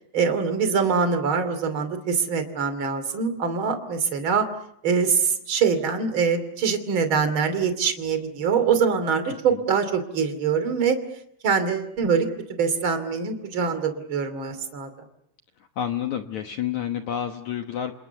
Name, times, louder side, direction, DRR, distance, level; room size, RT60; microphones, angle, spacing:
voice 1, 0.1-4.5 4.8-11.0 11.4-14.9, right 6 dB, 35° right, 9 dB, 2.8 m, -24 dB
voice 2, 15.8-17.9, left 9 dB, 80° left, 5 dB, 1.6 m, -29 dB
29.0 x 27.5 x 6.9 m, 0.74 s
omnidirectional pair, 5.2 m